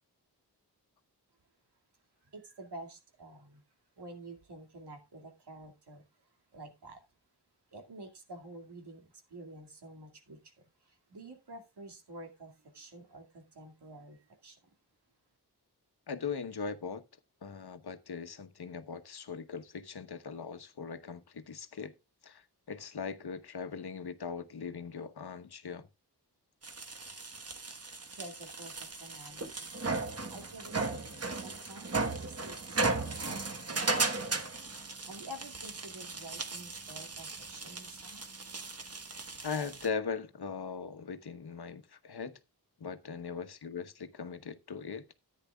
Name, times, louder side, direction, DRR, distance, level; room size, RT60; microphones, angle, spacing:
voice 1, 2.2-3.6 4.0-7.0 7.7-14.7 28.2-29.7 30.3-34.6 35.1-38.2, right 1 dB, 85° right, 2.3 m, -49 dB
voice 2, 16.1-17.0 17.4-21.9 22.2-25.9 39.4-42.4 42.8-45.0, left 5 dB, 75° left, 1.1 m, -40 dB
sound 1, 26.6-39.9, right 3 dB, 40° right, 1.3 m, -36 dB
14.0 x 9.6 x 2.3 m
wide cardioid pair, 90°, 39 cm